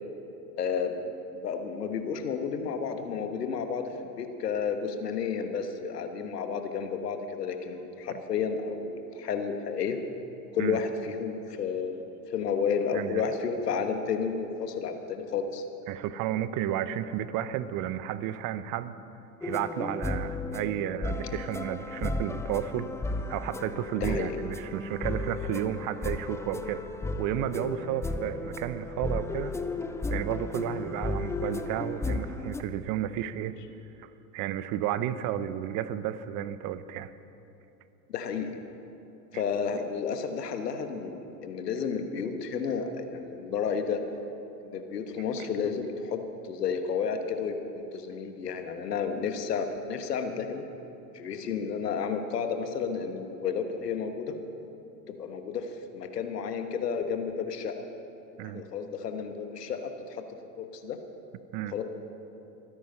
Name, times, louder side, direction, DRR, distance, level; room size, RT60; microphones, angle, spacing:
voice 1, 0.6-0.9 1.4-10.0 10.5-15.6 24.0-24.3 38.1-38.6 39.3-44.0 44.6-46.2 46.4-50.6 51.1-54.3 55.2-55.7 55.9-57.7 58.4-59.8 60.1-60.2 60.6-61.0 61.7-61.8, left 6 dB, 80° left, 6 dB, 1.4 m, -31 dB
voice 2, 12.9-13.3 15.9-18.9 19.4-26.8 27.2-29.6 30.1-33.6 34.0-37.1 39.3-39.4 45.4-45.5 58.4-58.6 61.5-61.8, right 11 dB, 45° right, 14 dB, 0.8 m, -32 dB
sound 1, 19.4-32.6, left 2 dB, 5° left, 0.5 m, -34 dB
23.5 x 10.0 x 5.5 m, 2.9 s
hypercardioid pair, 85°, 47 cm